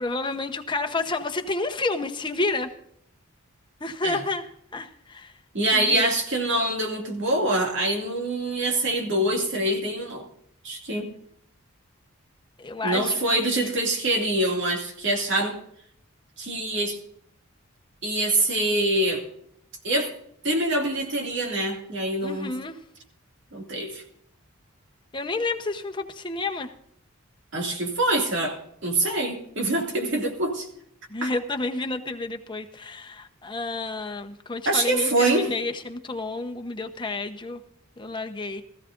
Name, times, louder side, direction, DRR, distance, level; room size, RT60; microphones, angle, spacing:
voice 1, 0.0-2.7 3.8-4.5 4.7-5.3 5.7-6.1 12.6-13.7 22.2-22.8 25.1-26.7 31.1-37.6 38.0-38.6, left 3 dB, 20° left, 6 dB, 1.0 m, -30 dB
voice 2, 5.5-10.3 10.6-11.1 12.8-15.6 16.4-17.0 18.0-19.2 19.8-20.1 20.4-22.5 23.5-24.0 27.5-30.7 31.2-31.3 34.7-35.5, right 1 dB, 55° right, 1 dB, 2.5 m, -25 dB
17.5 x 15.0 x 2.6 m, 0.69 s
head